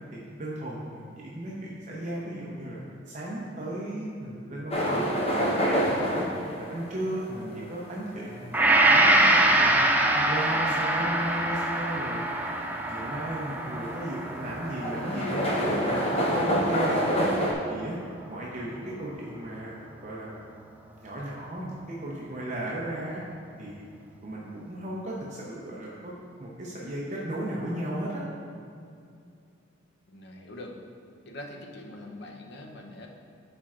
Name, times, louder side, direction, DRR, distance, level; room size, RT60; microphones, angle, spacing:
voice 1, 0.1-9.8 10.1-12.2 12.6-17.3 17.7-18.0 18.3-23.2 23.6-23.9 24.2-26.1 26.4-28.3, right 1 dB, 40° right, -5 dB, 0.7 m, -35 dB
sound 1, 4.7-17.5, equal, 35° left, 0.9 m, -29 dB
Gong, 8.5-16.9 17.3-17.4, right 1 dB, 10° right, 0.4 m, -24 dB
voice 2, 30.1-30.8 31.3-33.1, left 1 dB, 65° left, 2 dB, 0.7 m, -43 dB
11.5 x 4.4 x 2.4 m, 2.4 s
head